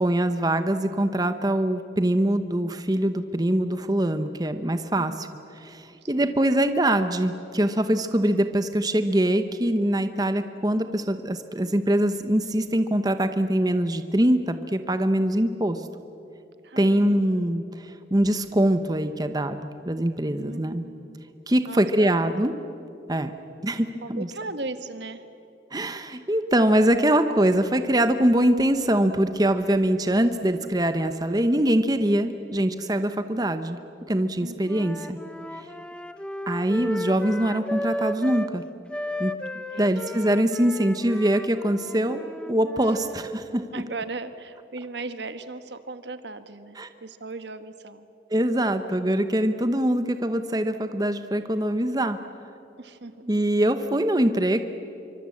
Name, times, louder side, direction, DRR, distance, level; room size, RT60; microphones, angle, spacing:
voice 1, 0.0-5.3 5.6-15.9 16.8-20.8 21.5-22.5 23.1-23.3 23.6-24.3 25.7-33.8 34.1-35.2 36.5-38.6 39.2-39.3 39.8-42.2 42.5-43.6 46.8-46.9 48.3-52.2 53.2-54.6, right 1 dB, 20° right, 9 dB, 0.9 m, -23 dB
voice 2, 4.9-5.4 6.1-6.4 16.6-17.4 20.4-21.2 21.6-22.1 24.0-25.2 34.4-34.8 39.5-40.1 42.8-42.9 43.7-48.1 48.9-49.3 52.8-53.1, right 3 dB, 75° right, 10 dB, 1.4 m, -38 dB
Wind instrument woodwind instrument, 34.6-38.5 38.9-43.3, equal, 5° left, 0.8 m, -34 dB
25.5 x 24.5 x 8.5 m, 2.7 s
head